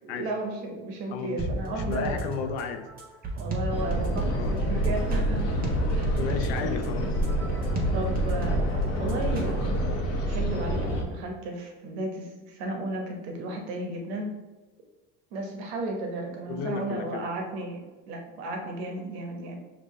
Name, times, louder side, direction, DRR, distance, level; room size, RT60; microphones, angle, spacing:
voice 1, 0.0-2.2 3.4-5.5 5.9-6.1 6.5-6.7 7.9-9.9 10.2-14.3 15.3-17.8 18.1-19.5, right 2 dB, 80° right, 2 dB, 1.1 m, -34 dB
voice 2, 1.1-2.9 4.3-4.6 6.2-7.1 16.5-17.3, left 6 dB, 85° left, 7 dB, 0.6 m, -34 dB
sound 1, 1.4-9.8, right 2 dB, 30° right, 1.1 m, -34 dB
sound 2, 3.7-11.0, equal, 50° left, 0.9 m, -27 dB
5.3 x 2.9 x 3.1 m, 1.2 s
supercardioid pair, 90°, 31 cm